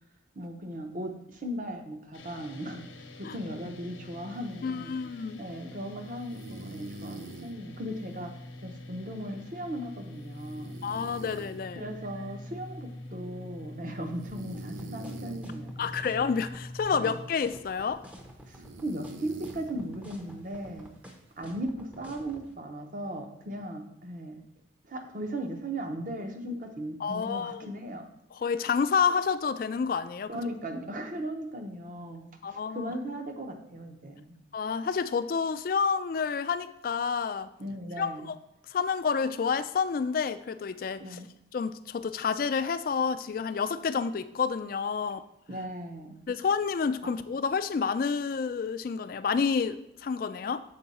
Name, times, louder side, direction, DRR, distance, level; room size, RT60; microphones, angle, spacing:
voice 1, 0.4-2.9 3.2-4.9 5.4-8.3 8.6-10.8 11.8-15.7 16.9-17.2 18.5-20.9 21.4-24.4 24.9-28.0 30.3-34.4 37.6-38.3 41.0-41.3 45.5-46.2, right 1 dB, 45° right, 5 dB, 0.8 m, -37 dB
sound 1, 2.1-17.3, left 1 dB, 85° left, 0.8 m, -45 dB
sound 2, 4.3-21.4, right 2 dB, 85° right, 0.5 m, -49 dB
voice 2, 4.6-5.4 10.8-11.8 15.8-18.0 27.0-27.7 28.3-30.3 32.4-32.9 34.5-37.5 38.0-38.4 38.7-41.2 41.5-45.3 46.3-50.6, left 5 dB, 45° left, 11 dB, 0.3 m, -29 dB
sound 3, 14.5-22.5, equal, 5° right, 0.6 m, -49 dB
6.8 x 4.6 x 4.1 m, 0.81 s
head